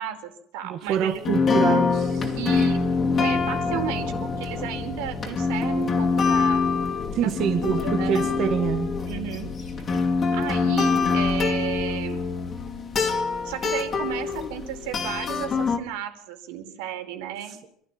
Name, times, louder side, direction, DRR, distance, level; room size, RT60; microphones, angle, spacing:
voice 1, 0.0-1.2 2.3-2.8 3.2-6.7 7.2-8.3 9.0-9.7 10.3-12.3 13.4-17.6, right 10 dB, 85° right, 6 dB, 4.8 m, -34 dB
voice 2, 0.6-2.4 7.1-8.9, right 8 dB, 40° right, 5 dB, 1.9 m, -26 dB
sound 1, 0.9-1.0 1.2-15.8, left 4 dB, 25° left, 2.7 m, -25 dB
27.5 x 13.0 x 9.0 m, 0.68 s
cardioid pair, 170°, 0 cm